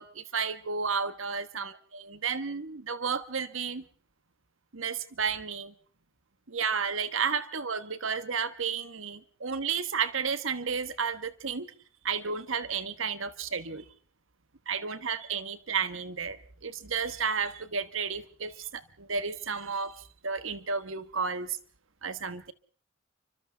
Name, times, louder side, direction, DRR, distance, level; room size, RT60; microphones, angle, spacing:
voice 1, 0.0-3.8 4.7-5.7 6.5-11.7 12.0-13.8 14.7-21.6 22.0-22.5, right 5 dB, 85° right, 12 dB, 1.4 m, -32 dB
29.5 x 25.0 x 3.5 m, 0.42 s
head